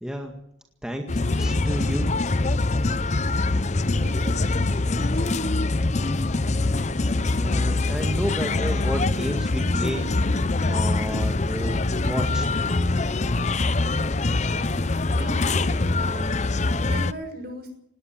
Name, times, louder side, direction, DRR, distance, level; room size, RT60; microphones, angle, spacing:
voice 1, 0.0-0.4 0.8-2.2 7.3-12.5, equal, 5° right, 2 dB, 2.0 m, -31 dB
sound 1, 1.1-17.1, left 2 dB, 35° left, 0.7 m, -24 dB
voice 2, 3.2-3.5 3.8-5.5 14.3-16.5 16.8-17.8, right 1 dB, 50° right, 6 dB, 6.3 m, -40 dB
19.5 x 18.5 x 7.6 m, 0.75 s
head